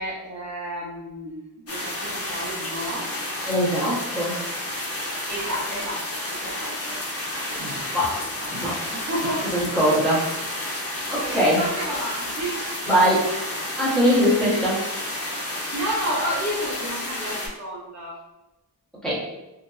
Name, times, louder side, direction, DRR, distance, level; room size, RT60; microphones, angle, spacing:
voice 1, 0.0-3.0 5.3-7.0 7.5-7.6 8.2-9.6 11.1-12.6 12.8-13.0 14.0-14.1 14.5-14.6 15.7-18.2, equal, 45° right, -6 dB, 0.6 m, -32 dB
sound 1, 1.7-17.5, left 1 dB, 35° left, 0.5 m, -31 dB
voice 2, 3.5-4.4 7.0-7.1 7.6-8.2 8.5-8.8 9.4-11.6 12.9-13.3 13.8-14.8 19.0-19.3, equal, ahead, -9 dB, 0.9 m, -22 dB
2.7 x 2.0 x 2.3 m, 0.99 s
wide cardioid pair, 130°, 39 cm